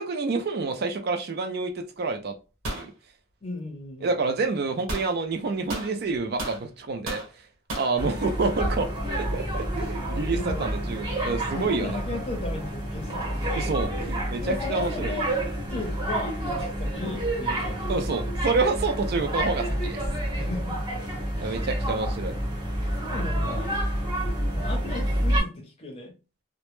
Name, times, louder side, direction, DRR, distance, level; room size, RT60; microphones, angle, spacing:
voice 1, 0.0-2.4 2.7-2.9 4.0-7.2 7.7-12.0 13.5-15.1 17.9-20.0 21.4-22.3, right 4 dB, 50° right, 0.3 m, -28 dB
Pistol lyd, 2.6-2.9 4.9-5.1 5.7-6.6 7.1-7.3 7.7-7.9, right 1 dB, 90° right, 1.0 m, -33 dB
voice 2, 3.4-4.1 10.3-10.7 11.5-13.5 14.4-15.4 15.7-17.9 20.3-20.8 21.4-21.6 23.0-23.7 24.5-26.1, left 2 dB, 30° left, 0.6 m, -36 dB
sound 1, 8.0-25.4, right 1 dB, 20° right, 0.7 m, -29 dB
2.1 x 2.0 x 3.0 m
head